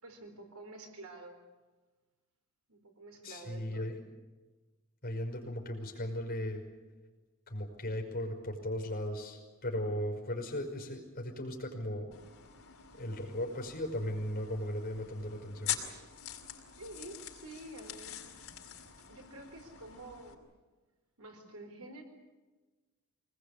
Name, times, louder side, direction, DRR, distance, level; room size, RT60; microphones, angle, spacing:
voice 1, 0.0-1.4 2.7-3.9 16.8-18.2 19.1-20.4 21.2-22.0, right 2 dB, 80° right, 4 dB, 4.2 m, -49 dB
voice 2, 3.2-4.0 5.0-6.6 7.5-12.2 12.9-15.8, left 1 dB, 45° left, 2 dB, 5.6 m, -37 dB
sound 1, 12.1-20.3, left 10 dB, 75° left, 4.4 m, -44 dB
25.0 x 20.0 x 8.6 m, 1.3 s
head